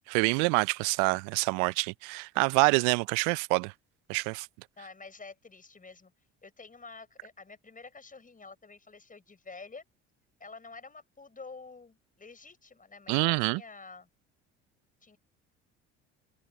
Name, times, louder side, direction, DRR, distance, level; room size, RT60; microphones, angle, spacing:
voice 1, 0.1-3.7 4.1-4.5 13.1-13.6, right 30 dB, 70° right, 0.7 m, -26 dB
voice 2, 4.8-6.1 6.4-9.8 10.4-14.1 15.0-15.2, left 4 dB, 25° left, 6.8 m, -49 dB
hypercardioid pair, 65°, 35 cm